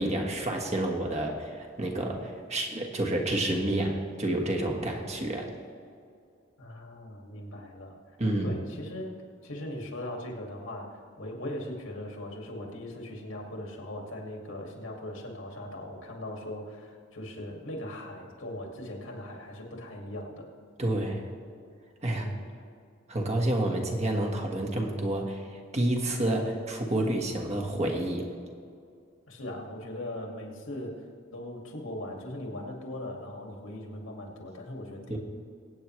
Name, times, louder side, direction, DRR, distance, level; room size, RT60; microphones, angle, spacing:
voice 1, 0.0-5.5 8.2-8.6 20.8-21.2 22.0-22.3 23.1-25.5 25.7-28.3 35.1-35.2, right 1 dB, 35° right, 2 dB, 1.5 m, -29 dB
voice 2, 6.6-8.0 8.4-20.5 22.1-22.5 29.3-31.0 31.3-35.2, left 1 dB, 85° left, 0 dB, 2.4 m, -39 dB
22.5 x 9.0 x 3.3 m, 2.3 s
head